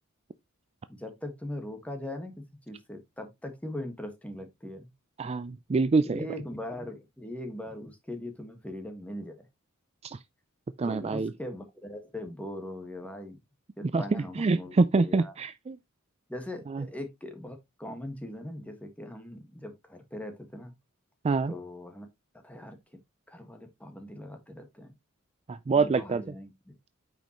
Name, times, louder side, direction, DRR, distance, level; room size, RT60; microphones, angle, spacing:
voice 1, 0.9-2.3 2.7-4.9 6.0-9.5 10.8-13.4 13.8-15.3 16.3-20.7 21.5-22.1 22.4-22.8 23.3-24.9 25.7-26.7, left 1 dB, 5° left, 1.5 m, -40 dB
voice 2, 5.2-6.3 10.0-10.2 10.8-11.3 13.8-15.8 16.7-16.8 21.2-21.5 25.5-26.2, right 4 dB, 30° right, 0.4 m, -26 dB
9.1 x 5.2 x 3.0 m
head